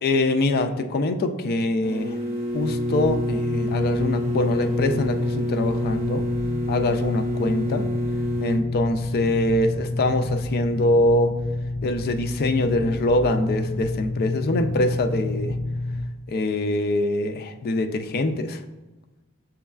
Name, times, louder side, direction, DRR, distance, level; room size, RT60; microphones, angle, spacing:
voice 1, 0.0-2.2 2.5-6.3 6.7-7.9 8.4-11.3 11.8-15.6 16.3-18.6, left 2 dB, 45° left, 7 dB, 0.3 m, -24 dB
sound 1, 1.8-8.6, left 1 dB, 30° right, 0.8 m, -29 dB
sound 2, 2.6-16.0, left 2 dB, 25° left, 0.9 m, -28 dB
6.9 x 3.1 x 2.3 m, 1.1 s
head